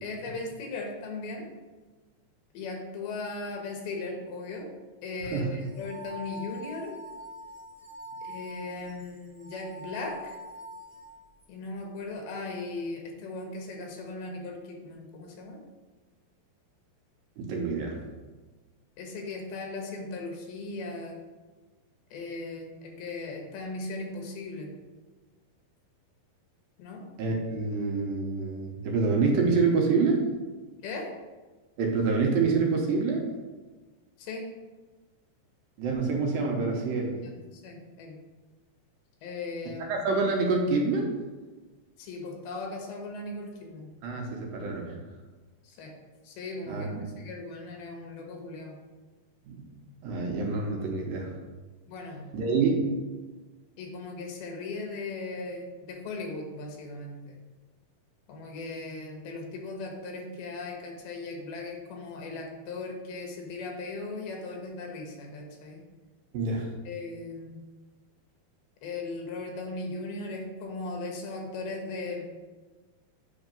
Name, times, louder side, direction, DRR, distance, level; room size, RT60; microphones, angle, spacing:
voice 1, 0.0-1.4 2.5-4.7 5.0-7.0 8.2-10.4 11.5-15.6 19.0-21.2 22.1-24.7 26.8-27.0 30.8-31.1 34.2-34.4 37.2-38.2 39.2-39.9 42.0-43.9 45.6-45.9 46.2-46.9 47.2-48.8 51.9-52.3 53.8-57.4 58.3-65.8 66.9-67.6 68.8-72.2, left 3 dB, 80° left, 1 dB, 3.0 m, -38 dB
sound 1, 5.6-11.5, equal, 50° right, 2.0 m, -44 dB
voice 2, 17.4-18.0 27.2-30.2 31.8-33.2 35.8-37.1 39.9-41.1 44.0-44.9 46.7-46.9 49.5-49.7 50.0-51.3 52.3-52.9 66.3-66.7, right 4 dB, 75° right, 0 dB, 2.5 m, -26 dB
8.1 x 3.6 x 5.2 m, 1.3 s
omnidirectional pair, 4.4 m